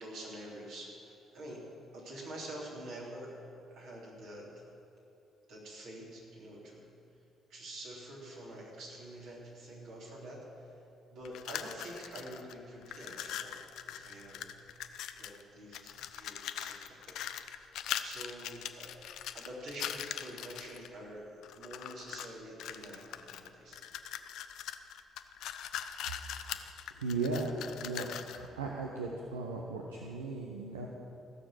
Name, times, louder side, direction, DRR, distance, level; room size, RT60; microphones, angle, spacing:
voice 1, 0.0-1.6 1.9-3.3 3.7-4.5 5.5-6.9 7.5-10.4 11.1-14.5 15.2-17.6 18.0-18.9 19.3-23.8, right 1 dB, 65° right, -5 dB, 3.4 m, -47 dB
sound 1, 11.3-12.5 12.8-15.4 15.7-20.9 21.4-22.3 22.6-28.5, left 10 dB, 65° left, 0.5 m, -41 dB
voice 2, 27.0-27.5 27.8-30.9, right 3 dB, 85° right, -1 dB, 0.8 m, -36 dB
16.0 x 6.8 x 7.6 m, 2.8 s
figure-of-eight pair, 45°, 0 cm